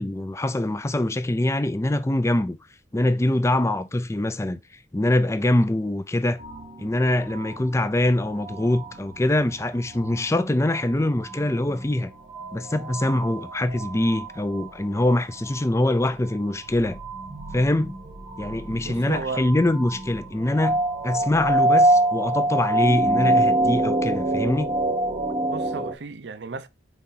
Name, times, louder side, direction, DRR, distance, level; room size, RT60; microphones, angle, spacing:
voice 1, 0.0-2.6 2.9-4.6 4.9-6.4 6.8-12.1 12.5-17.0 17.5-18.0 18.4-24.7, left 1 dB, 15° left, 0.4 m, -24 dB
sound 1, 6.4-25.9, right 1 dB, 30° right, 0.8 m, -27 dB
voice 2, 18.8-19.5 25.5-26.7, right 4 dB, 75° right, 0.6 m, -33 dB
4.8 x 4.1 x 5.4 m
head